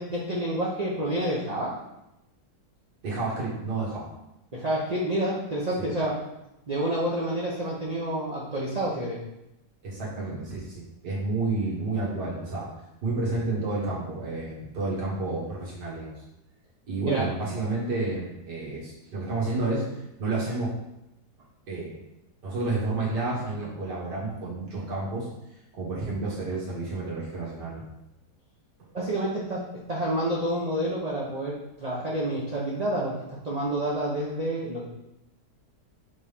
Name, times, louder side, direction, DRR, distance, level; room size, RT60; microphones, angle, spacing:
voice 1, 0.0-1.7 4.5-6.2 6.7-9.2 17.0-17.3 28.9-34.9, right 1 dB, 30° right, -5 dB, 0.8 m, -29 dB
voice 2, 3.0-4.1 5.8-5.9 9.8-12.7 13.0-16.1 16.9-20.7 21.7-21.9 22.4-25.3 25.7-27.8, right 3 dB, 85° right, -5 dB, 2.2 m, -30 dB
5.3 x 3.5 x 5.5 m, 0.88 s
omnidirectional pair, 1.8 m